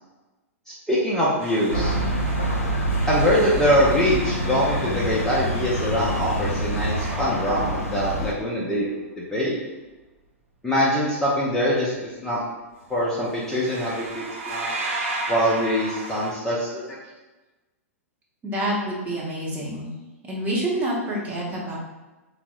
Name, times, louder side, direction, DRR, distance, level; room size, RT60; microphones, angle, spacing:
voice 1, 0.9-2.0 3.1-8.9 9.2-9.6 10.6-12.4 12.9-14.7 15.3-17.0, equal, 5° left, -8 dB, 0.6 m, -23 dB
sound 1, 1.4-8.5 12.8-13.0 13.3-16.3, right 2 dB, 55° right, 0.8 m, -35 dB
sound 2, 1.7-8.3, right 1 dB, 75° left, 0.5 m, -26 dB
voice 2, 18.4-19.9 20.2-21.8, right 1 dB, 20° right, -5 dB, 0.9 m, -27 dB
3.5 x 2.0 x 3.0 m, 1.1 s
figure-of-eight pair, 100°, 8 cm